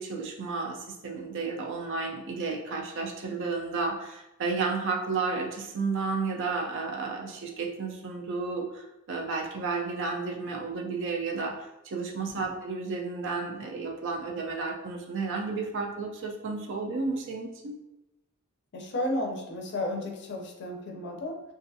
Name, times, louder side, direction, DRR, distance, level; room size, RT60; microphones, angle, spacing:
voice 1, 0.0-17.8, right 4 dB, 55° right, 2 dB, 0.4 m, -32 dB
voice 2, 18.7-21.4, left 1 dB, 55° left, 2 dB, 0.5 m, -33 dB
2.5 x 2.3 x 2.6 m, 0.95 s
head